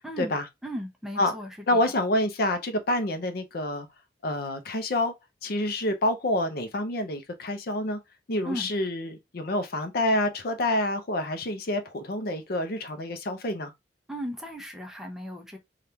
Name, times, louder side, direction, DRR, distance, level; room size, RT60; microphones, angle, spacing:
voice 1, 0.0-0.3 0.6-1.9 8.4-8.7 14.1-15.6, equal, 5° right, 0.6 m, -36 dB
voice 2, 1.7-3.9 4.2-5.1 5.4-8.0 8.3-13.7, left 1 dB, 60° left, 0.6 m, -27 dB
3.4 x 2.4 x 2.7 m
head